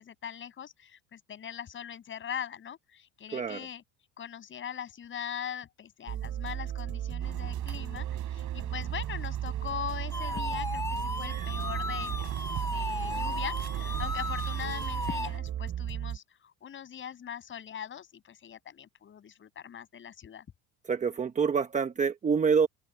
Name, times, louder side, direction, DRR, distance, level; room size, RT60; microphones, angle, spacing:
voice 1, 0.0-3.8 4.2-12.4 12.6-20.5, left 8 dB, 35° left, 7.2 m, -41 dB
sound 1, 6.1-16.2, right 11 dB, 45° right, 5.4 m, -35 dB
sound 2, 7.2-15.4, right 16 dB, 60° right, 5.0 m, -42 dB
sound 3, 10.1-15.3, left 2 dB, 10° left, 2.3 m, -36 dB
voice 2, 20.9-22.7, right 6 dB, 20° right, 1.0 m, -26 dB
open air
cardioid pair, 130°, 34 cm